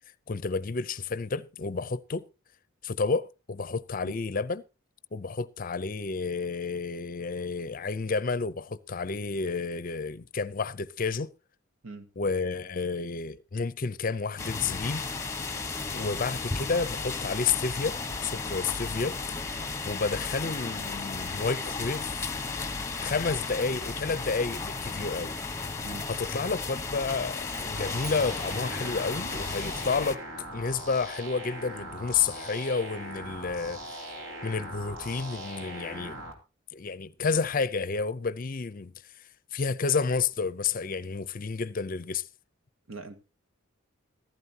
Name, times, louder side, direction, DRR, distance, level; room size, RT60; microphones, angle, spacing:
voice 1, 0.3-2.3 2.8-4.6 5.1-11.3 12.2-15.1 15.9-18.0 18.2-19.2 19.8-22.1 23.0-25.4 26.1-30.2 30.5-34.0 34.4-36.2 36.7-38.9 39.5-42.3, left 4 dB, 40° left, 0.5 m, -30 dB
sound 1, 14.4-30.2, left 4 dB, 15° left, 1.0 m, -34 dB
sound 2, 27.4-29.8, right 6 dB, 20° right, 7.9 m, -52 dB
sound 3, 27.8-36.3, right 1 dB, 65° right, 3.0 m, -40 dB
voice 2, 42.9-43.2, right 3 dB, 80° right, 1.7 m, -42 dB
15.0 x 15.0 x 2.8 m
head